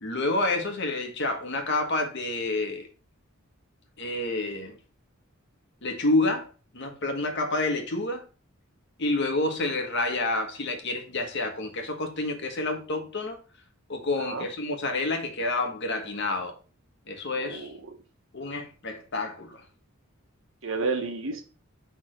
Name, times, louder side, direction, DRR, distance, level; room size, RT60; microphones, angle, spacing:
voice 1, 0.0-2.9 4.0-4.8 5.8-6.5 6.7-8.2 9.0-13.4 13.9-16.5 17.1-17.7 18.3-19.6, left 2 dB, 55° left, 1.4 m, -28 dB
voice 2, 14.2-14.5 17.4-18.0 20.6-21.4, right 4 dB, 65° right, 1.2 m, -31 dB
6.2 x 3.6 x 5.0 m
head